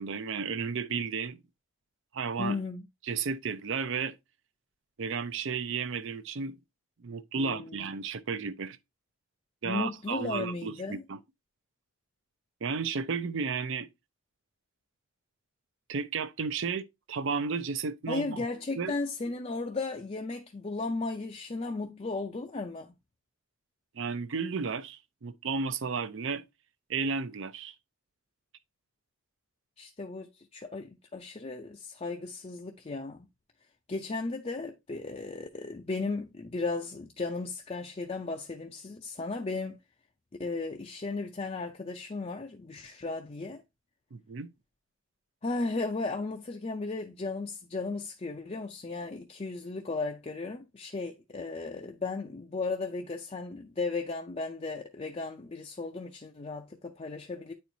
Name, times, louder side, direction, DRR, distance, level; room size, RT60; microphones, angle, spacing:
voice 1, 0.0-1.4 2.1-2.6 3.0-4.1 5.0-6.6 7.0-8.8 9.6-11.2 12.6-13.9 15.9-18.4 18.8-19.0 23.9-26.4 26.9-27.7 44.1-44.5, right 5 dB, 55° right, 0.5 m, -33 dB
voice 2, 2.4-2.8 7.4-7.9 9.7-11.0 18.1-22.9 29.8-33.3 33.9-39.8 40.4-43.6 45.4-57.5, left 3 dB, 30° left, 0.4 m, -35 dB
9.2 x 4.4 x 2.7 m
head